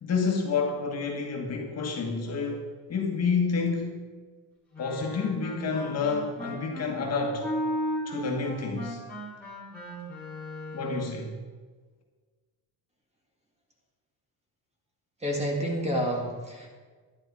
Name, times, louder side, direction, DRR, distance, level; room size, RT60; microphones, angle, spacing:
voice 1, 0.0-4.0 4.8-7.5 8.0-9.0 10.7-11.3, left 4 dB, 35° left, 1 dB, 1.6 m, -29 dB
Wind instrument woodwind instrument, 4.7-11.1, equal, 5° left, 3.2 m, -35 dB
voice 2, 15.2-16.7, equal, 15° right, 0 dB, 1.8 m, -29 dB
11.5 x 11.0 x 4.7 m, 1.4 s
cardioid pair, 160°, 42 cm